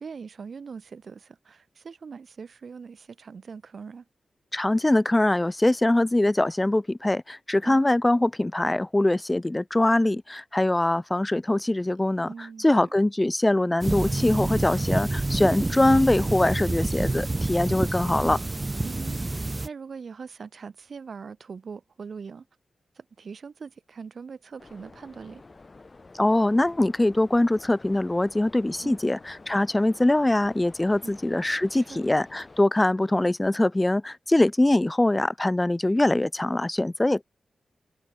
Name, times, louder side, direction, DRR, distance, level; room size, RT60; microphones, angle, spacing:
voice 1, 0.0-4.0 7.6-7.9 12.3-12.9 18.8-19.2 19.6-22.5 22.9-25.4 28.8-29.0 31.0-31.2 31.7-32.0, right 5 dB, 60° right, 3.0 m, -41 dB
voice 2, 4.5-12.3 12.6-18.4 26.1-37.2, left 1 dB, 15° left, 0.7 m, -23 dB
sound 1, 13.8-19.7, right 2 dB, 25° right, 1.4 m, -28 dB
sound 2, 24.6-32.6, left 3 dB, 35° left, 3.4 m, -49 dB
wide cardioid pair, 95°, 0 cm